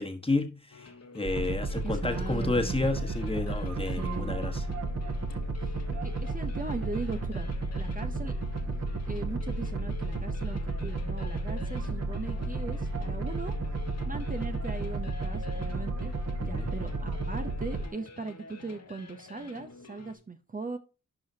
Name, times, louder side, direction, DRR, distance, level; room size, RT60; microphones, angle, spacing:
voice 1, 0.0-4.6 16.4-16.7, left 2 dB, 20° left, 1.3 m, -31 dB
sound 1, 0.7-20.2, left 3 dB, 55° left, 1.3 m, -49 dB
sound 2, 1.2-17.9, right 2 dB, 50° right, 1.6 m, -32 dB
voice 2, 1.8-2.7 3.9-4.5 5.6-8.3 9.1-13.5 14.0-16.1 16.5-20.8, right 3 dB, 25° right, 0.7 m, -39 dB
11.5 x 4.9 x 2.8 m
wide cardioid pair, 100°, 31 cm